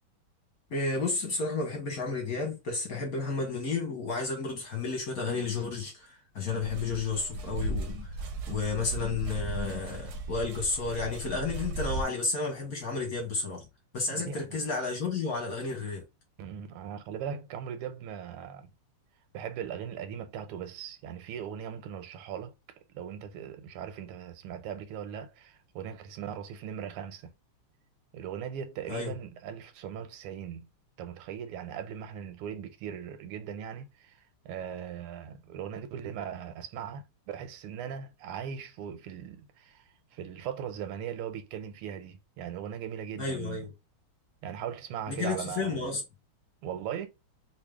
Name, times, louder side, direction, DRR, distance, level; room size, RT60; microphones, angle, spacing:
voice 1, 0.7-8.1 8.5-13.6 13.9-16.0 28.9-29.1 43.2-43.7 45.1-46.0, left 4 dB, 50° left, 1.3 m, -32 dB
sound 1, 6.6-12.0, right 2 dB, 70° right, 1.0 m, -36 dB
voice 2, 14.1-14.6 16.4-18.7 19.3-22.5 22.9-27.3 28.1-30.7 31.0-39.8 40.1-43.7 44.4-45.9 46.6-47.1, right 8 dB, 90° right, 1.6 m, -39 dB
3.4 x 2.7 x 3.4 m
omnidirectional pair, 2.4 m